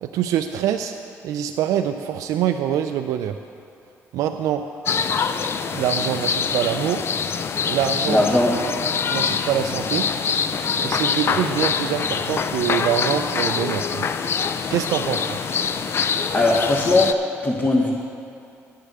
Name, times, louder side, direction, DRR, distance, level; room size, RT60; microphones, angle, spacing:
voice 1, 0.0-0.9 1.2-3.4 4.1-4.6 5.7-7.1 7.7-8.2 9.1-10.1 10.8-14.1 14.7-15.4, right 10 dB, 80° right, 6 dB, 0.4 m, -24 dB
sound 1, 4.9-17.1, left 6 dB, 45° left, 0.5 m, -24 dB
voice 2, 8.1-8.5 16.3-17.1 17.4-17.9, left 2 dB, 30° left, -2 dB, 1.2 m, -18 dB
10.5 x 6.6 x 7.5 m, 2.5 s
cardioid pair, 90°, 6 cm